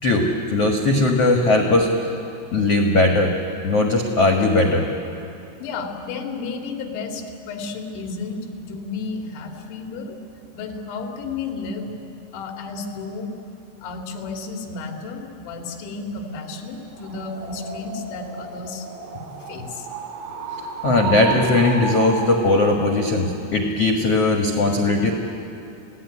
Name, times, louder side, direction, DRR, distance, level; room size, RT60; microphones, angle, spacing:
voice 1, 0.0-2.1 2.5-3.3 3.6-4.9 20.8-25.1, left 2 dB, 85° left, 2 dB, 1.3 m, -19 dB
voice 2, 5.6-10.2 10.5-11.9 12.3-13.3 13.8-18.9 19.5-19.9, left 4 dB, 70° left, 2 dB, 4.4 m, -32 dB
sound 1, 16.9-22.7, right 4 dB, 50° right, 4.4 m, -32 dB
28.5 x 17.0 x 9.8 m, 2.7 s
omnidirectional pair, 5.5 m